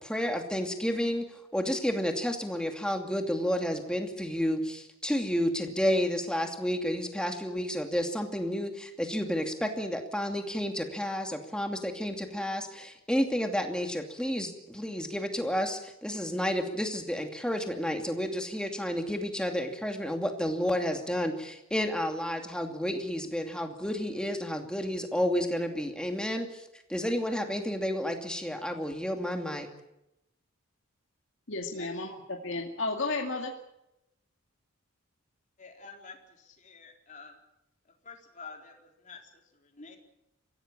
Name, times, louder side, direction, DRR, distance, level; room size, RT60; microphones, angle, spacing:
voice 1, 0.0-29.7, equal, 5° left, 4 dB, 2.6 m, -31 dB
voice 2, 31.5-33.5, left 3 dB, 60° left, 1 dB, 2.4 m, -33 dB
voice 3, 35.6-37.4 38.0-40.0, left 4 dB, 35° left, 2 dB, 4.0 m, -49 dB
24.5 x 16.5 x 8.9 m, 0.86 s
head